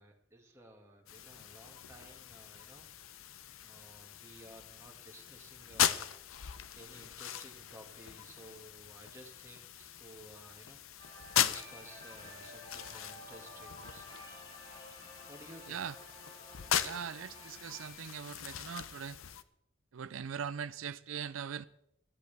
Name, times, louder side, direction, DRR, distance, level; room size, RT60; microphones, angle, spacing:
voice 1, 0.0-2.9 3.6-6.1 6.7-11.0 11.4-14.7 15.3-15.8, right 1 dB, 15° right, 2.0 m, -55 dB
sound 1, 1.1-19.4, left 10 dB, 90° left, 0.7 m, -39 dB
sound 2, 11.0-17.9, equal, 20° left, 7.3 m, -53 dB
voice 2, 16.8-19.2 19.9-21.6, right 7 dB, 80° right, 0.5 m, -41 dB
19.5 x 14.0 x 3.5 m
head